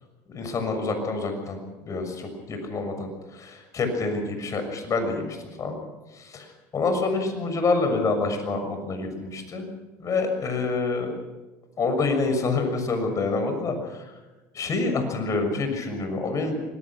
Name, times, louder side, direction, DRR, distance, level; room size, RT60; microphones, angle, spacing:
voice 1, 0.3-1.6 1.8-5.8 6.2-6.5 6.7-9.7 10.0-11.1 11.8-13.9 14.5-16.6, left 3 dB, 40° left, 6 dB, 6.6 m, -27 dB
25.0 x 19.5 x 6.1 m, 1.2 s
supercardioid pair, 95°, 9 cm